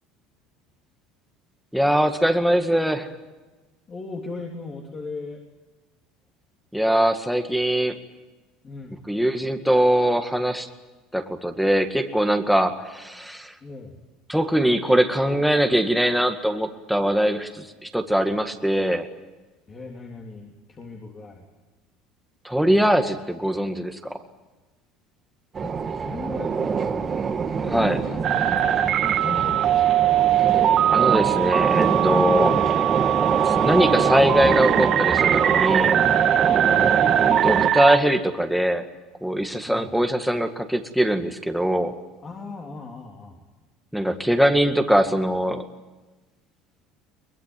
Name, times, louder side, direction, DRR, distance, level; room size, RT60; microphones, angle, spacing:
voice 1, 1.7-3.1 6.7-8.0 9.1-10.7 11.1-13.5 14.3-19.1 22.4-24.2 27.7-28.0 30.9-32.6 33.5-36.0 37.4-38.9 39.2-42.0 43.9-45.6, equal, ahead, 5 dB, 2.0 m, -22 dB
voice 2, 3.9-5.4 8.6-9.0 13.6-13.9 19.7-21.5 25.6-26.7 27.6-29.9 32.3-32.6 36.5-37.0 39.7-39.9 42.2-43.4, left 3 dB, 30° left, 0 dB, 3.4 m, -37 dB
sound 1, 25.6-37.7, right 6 dB, 30° right, 1.9 m, -25 dB
sound 2, 28.2-38.0, right 11 dB, 50° right, 1.7 m, -21 dB
23.0 x 21.0 x 9.1 m, 1.2 s
supercardioid pair, 115°, 0 cm